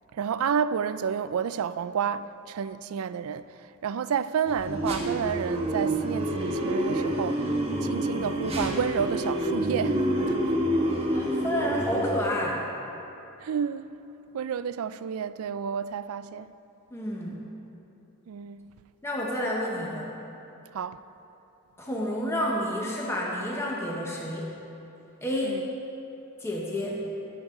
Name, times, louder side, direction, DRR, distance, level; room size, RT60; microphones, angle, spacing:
voice 1, 0.1-10.5 13.4-14.0 14.3-16.5 18.3-18.7 20.7-21.0 25.4-25.6, right 7 dB, 80° right, 0.4 m, -30 dB
sound 1, 4.5-12.2, right 1 dB, 25° right, 1.2 m, -28 dB
voice 2, 11.1-12.6 16.9-17.4 19.0-20.1 21.8-24.5 25.2-25.6 26.4-27.1, equal, 10° left, 1.0 m, -30 dB
14.0 x 10.5 x 3.8 m
head